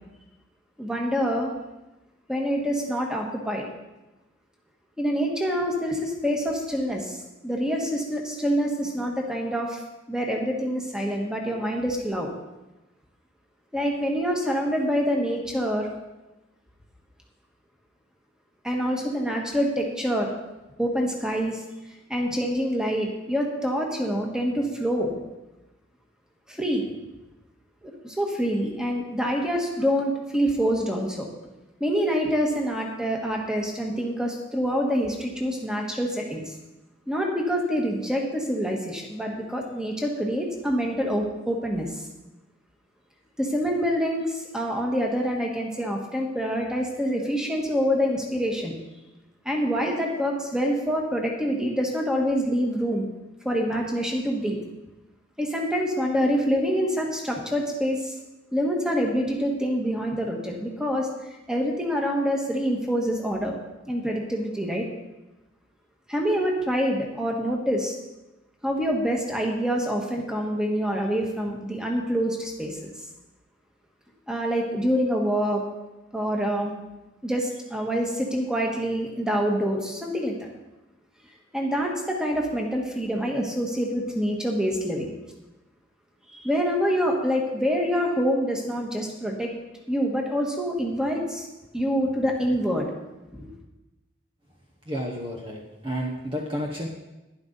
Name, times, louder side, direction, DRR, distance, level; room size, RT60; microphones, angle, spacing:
voice 1, 0.8-1.5 2.3-3.7 5.0-9.8 10.1-12.3 13.7-15.9 18.6-20.3 20.8-21.6 22.1-25.1 26.5-26.9 27.8-31.3 31.8-36.5 37.1-42.1 43.4-48.7 49.4-53.1 53.4-54.6 55.4-58.1 58.5-63.6 63.9-64.9 66.1-67.9 68.6-72.9 74.3-75.6 76.1-76.7 77.2-80.5 81.5-85.1 86.3-89.5 89.9-91.5 91.7-92.9 93.3-93.5, equal, 5° right, 0 dB, 1.5 m, -26 dB
voice 2, 94.9-96.9, equal, 25° right, 0 dB, 1.0 m, -31 dB
11.5 x 11.0 x 4.0 m, 1.0 s
head